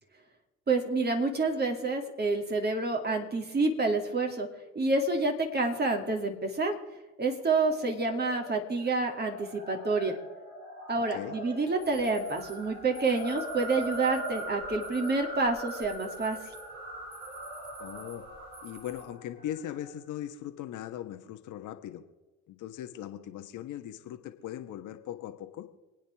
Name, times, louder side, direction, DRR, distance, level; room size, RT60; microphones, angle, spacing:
voice 1, 0.7-4.5 4.7-6.7 7.2-10.2 10.9-16.4, right 3 dB, 25° right, 2 dB, 2.6 m, -28 dB
sound 1, 7.5-19.9, equal, 75° right, 4.5 m, -41 dB
voice 2, 11.0-11.3 17.8-18.2 18.6-22.0 22.5-25.7, left 11 dB, 55° left, 6 dB, 1.5 m, -39 dB
sound 2, 11.8-19.0, right 3 dB, 60° right, 5.5 m, -52 dB
28.0 x 9.4 x 3.6 m, 1.1 s
hypercardioid pair, 65°, 36 cm